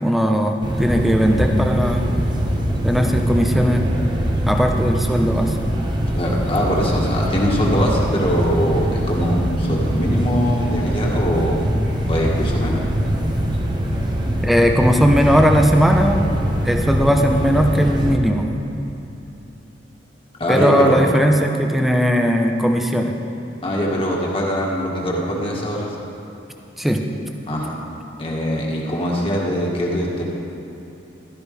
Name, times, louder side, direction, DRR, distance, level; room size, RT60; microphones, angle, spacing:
voice 1, 0.0-2.0 2.8-3.8 4.5-5.6 14.4-16.2 16.6-18.5 20.5-23.2 26.8-27.0, equal, ahead, 3 dB, 0.8 m, -18 dB
sound 1, 0.6-18.1, equal, 25° right, 1.1 m, -22 dB
voice 2, 6.2-11.6 12.1-12.8 20.4-21.1 23.6-26.0 27.5-27.8 28.2-30.2, equal, 30° left, -3 dB, 1.9 m, -22 dB
15.5 x 13.0 x 3.5 m, 3.0 s
head